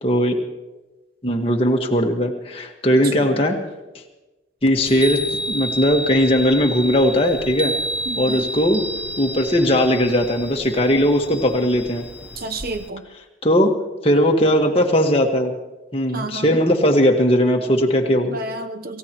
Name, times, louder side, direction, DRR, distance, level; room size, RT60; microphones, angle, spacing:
voice 1, 0.0-0.4 1.2-3.6 4.6-7.7 8.2-8.8 9.2-12.0 13.4-13.7 14.0-15.5 15.9-18.4, equal, 30° left, 1 dB, 1.6 m, -18 dB
voice 2, 2.9-3.5 8.1-8.5 12.3-13.0 16.1-16.6 18.2-19.0, right 2 dB, 50° right, 8 dB, 1.0 m, -31 dB
Chime, 4.8-12.9, equal, 5° right, 0.7 m, -30 dB
28.5 x 16.0 x 3.1 m, 1.1 s
head